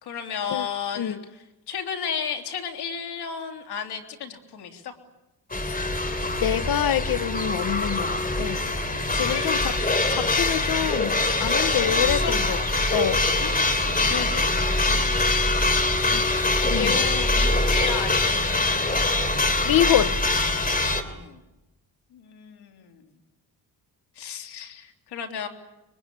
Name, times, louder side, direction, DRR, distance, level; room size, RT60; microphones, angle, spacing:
voice 1, 0.0-1.2 1.7-4.9 9.2-9.7 11.7-12.3 13.4-15.2 16.6-19.0 21.0-21.4 22.1-23.1 24.2-25.5, left 7 dB, 85° left, 3.4 m, -33 dB
sound 1, 5.5-21.0, left 2 dB, 20° left, 3.0 m, -23 dB
voice 2, 6.4-8.6 9.1-9.8 10.1-12.6 12.9-13.2 16.1-16.2 16.7-16.9 19.6-20.2, left 11 dB, 65° left, 1.0 m, -26 dB
25.0 x 22.5 x 9.9 m
cardioid pair, 100°, 39 cm